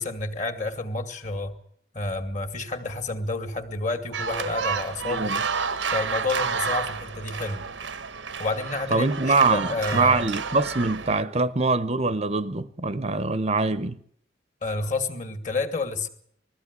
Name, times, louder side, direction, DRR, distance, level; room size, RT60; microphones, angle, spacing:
voice 1, 0.0-1.5 1.9-5.3 5.9-7.7 8.4-10.3 14.6-16.1, left 3 dB, 45° left, 2.1 m, -30 dB
sound 1, 4.1-11.2, right 5 dB, 90° right, 1.2 m, -30 dB
voice 2, 5.0-5.4 8.9-14.0, right 3 dB, 35° right, 0.8 m, -24 dB
20.5 x 15.0 x 9.6 m
head